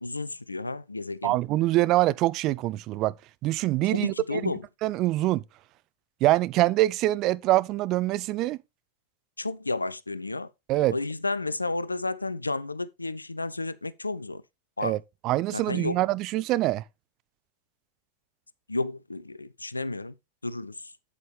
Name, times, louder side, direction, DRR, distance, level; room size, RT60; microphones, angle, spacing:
voice 1, 0.0-1.4 3.9-4.6 9.4-10.5 10.9-14.4 14.8-15.0 15.5-16.0 18.7-20.1 20.4-20.9, left 2 dB, 80° left, 0.5 m, -32 dB
voice 2, 1.2-3.1 3.4-4.5 4.8-5.4 6.2-8.6 10.7-11.0 14.8-15.0 15.2-16.8, right 16 dB, 40° right, 0.4 m, -24 dB
8.5 x 8.1 x 3.3 m
figure-of-eight pair, 90°, 0 cm